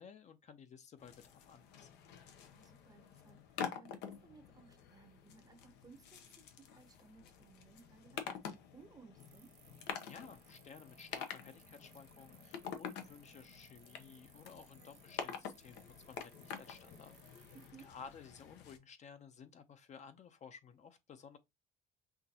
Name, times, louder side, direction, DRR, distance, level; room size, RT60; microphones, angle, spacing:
voice 1, 0.0-1.9 10.0-17.1 17.8-21.4, left 6 dB, 45° left, 0.7 m, -55 dB
sound 1, 1.0-18.8, left 7 dB, 90° left, 0.9 m, -48 dB
voice 2, 2.5-9.5 17.5-17.9, right 5 dB, 20° right, 0.7 m, -61 dB
sound 2, 9.2-17.8, right 11 dB, 70° right, 1.0 m, -64 dB
5.8 x 2.6 x 2.8 m
cardioid pair, 110°, 17 cm